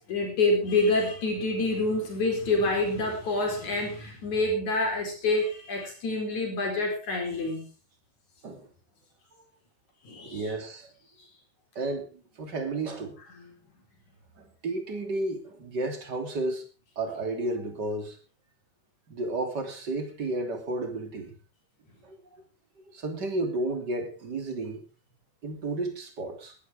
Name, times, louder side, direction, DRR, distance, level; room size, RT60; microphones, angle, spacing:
voice 1, 0.0-7.7 10.0-10.4 13.4-13.7, left 2 dB, 70° left, 2 dB, 5.9 m, -27 dB
voice 2, 10.3-10.9 11.8-13.2 14.4-16.7 17.0-18.2 19.1-21.3 22.0-22.4 22.8-24.8 25.4-26.6, right 2 dB, 35° right, 5 dB, 3.4 m, -32 dB
20.5 x 12.5 x 3.7 m, 0.32 s
omnidirectional pair, 3.5 m